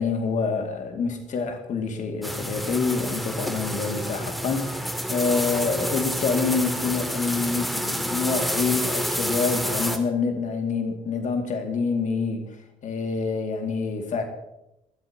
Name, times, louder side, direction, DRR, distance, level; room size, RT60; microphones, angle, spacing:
voice 1, 0.0-12.4 12.8-14.2, left 4 dB, 50° left, 2.2 m, -27 dB
sound 1, 2.2-10.0, equal, ahead, 2.2 m, -29 dB
28.5 x 12.5 x 2.9 m
figure-of-eight pair, 50°, 17 cm